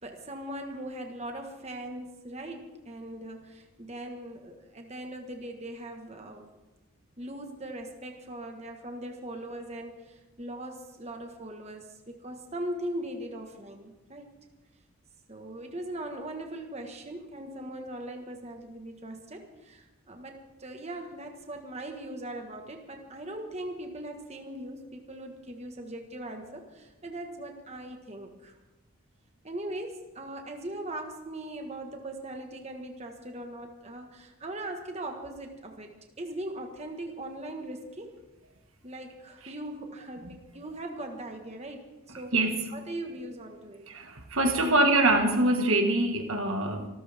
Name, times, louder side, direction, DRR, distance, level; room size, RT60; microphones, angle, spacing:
voice 1, 0.0-6.5 7.2-14.3 15.3-28.6 29.4-38.2 38.8-42.4 42.7-43.9, right 1 dB, 30° right, 3 dB, 1.6 m, -40 dB
voice 2, 43.9-46.9, right 2 dB, 80° right, 4 dB, 1.8 m, -24 dB
26.0 x 13.5 x 3.6 m, 1.1 s
head